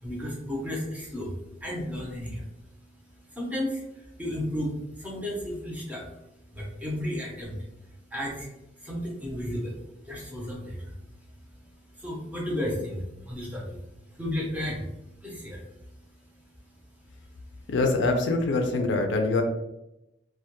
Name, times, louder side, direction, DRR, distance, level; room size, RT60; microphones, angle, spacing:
voice 1, 0.0-2.5 3.3-6.1 6.5-7.6 8.1-8.5 8.8-10.9 11.9-13.8 14.1-14.9 15.2-15.7, left 1 dB, 10° right, -2 dB, 0.5 m, -33 dB
voice 2, 17.7-19.4, left 3 dB, 70° left, 4 dB, 0.4 m, -24 dB
2.2 x 2.1 x 2.8 m, 0.89 s
head